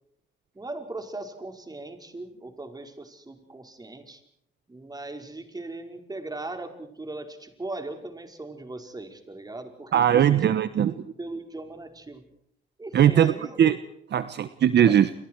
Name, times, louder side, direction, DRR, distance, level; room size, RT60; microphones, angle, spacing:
voice 1, 0.6-4.2 4.7-10.4 11.2-12.3 12.8-13.7 14.9-15.0, right 2 dB, 20° right, 6 dB, 5.1 m, -38 dB
voice 2, 9.9-10.9 12.9-13.3 13.6-13.8 14.1-15.1, right 10 dB, 60° right, 13 dB, 1.2 m, -19 dB
30.0 x 23.5 x 4.7 m, 0.68 s
cardioid pair, 90°, 20 cm